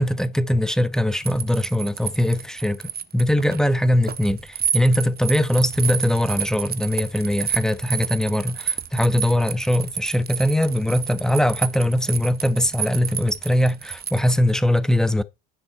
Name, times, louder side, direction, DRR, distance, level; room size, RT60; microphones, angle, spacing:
voice 1, 0.0-15.2, left 1 dB, ahead, 1.1 m, -21 dB
sound 1, 1.2-14.4, right 8 dB, 35° right, 1.0 m, -30 dB
10.5 x 6.3 x 4.1 m
figure-of-eight pair, 55°, 29 cm